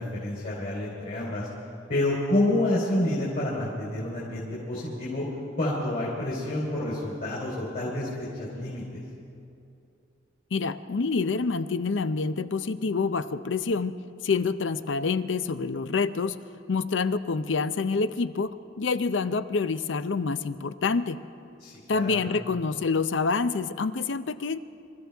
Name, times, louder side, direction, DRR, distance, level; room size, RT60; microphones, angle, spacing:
voice 1, 0.0-1.5 1.9-5.2 5.6-8.8 21.6-22.3, left 1 dB, 50° left, -7 dB, 3.7 m, -28 dB
voice 2, 10.5-13.9 14.2-16.4 16.7-21.2 21.9-24.6, left 4 dB, 75° left, 13 dB, 0.6 m, -27 dB
28.0 x 14.5 x 3.5 m, 2.6 s
head